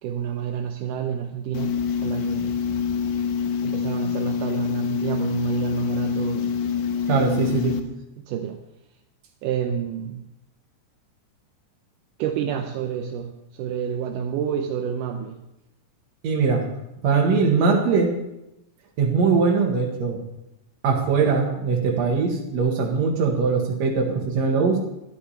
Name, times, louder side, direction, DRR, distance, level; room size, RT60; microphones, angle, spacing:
voice 1, 0.0-2.6 3.6-6.6 7.5-7.6 8.2-8.6 9.4-10.3 12.2-15.4 17.0-17.1, right 9 dB, 80° right, 4 dB, 2.3 m, -29 dB
sound 1, 1.5-7.8, left 7 dB, 75° left, 2.3 m, -26 dB
voice 2, 7.1-7.8 16.2-16.7 17.0-18.1 19.0-20.2 20.8-24.8, right 5 dB, 60° right, 1 dB, 2.8 m, -21 dB
12.0 x 12.0 x 4.3 m, 0.88 s
omnidirectional pair, 3.8 m